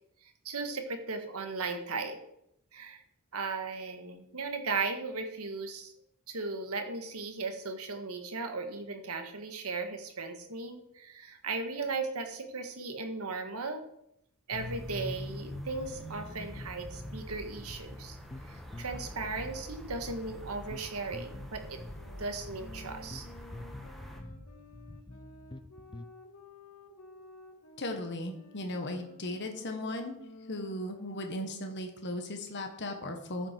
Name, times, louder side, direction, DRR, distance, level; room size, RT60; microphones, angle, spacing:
voice 1, 0.2-2.2 2.7-3.0 3.3-5.9 6.3-13.8 14.5-18.2 18.4-21.8 22.2-23.2, right 4 dB, 90° right, 5 dB, 1.8 m, -37 dB
sound 1, 14.5-24.2, equal, ahead, 1.6 m, -44 dB
sound 2, 16.5-26.1, left 2 dB, 20° left, 0.5 m, -48 dB
sound 3, 21.9-31.9, left 1 dB, 90° left, 1.9 m, -53 dB
voice 2, 27.8-30.2 30.5-33.5, left 1 dB, 55° left, 4 dB, 1.5 m, -37 dB
14.0 x 7.7 x 4.6 m, 0.78 s
head